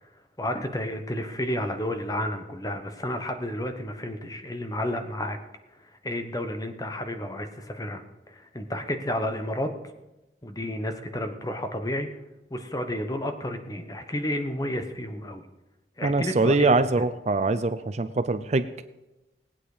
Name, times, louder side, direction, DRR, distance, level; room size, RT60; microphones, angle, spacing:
voice 1, 0.4-5.4 6.0-8.0 8.3-9.7 10.4-12.1 12.5-15.4 16.0-17.1, left 1 dB, 20° left, 7 dB, 1.0 m, -31 dB
voice 2, 16.0-18.7, right 3 dB, 40° right, 11 dB, 0.5 m, -23 dB
18.5 x 8.8 x 4.9 m, 1.0 s
head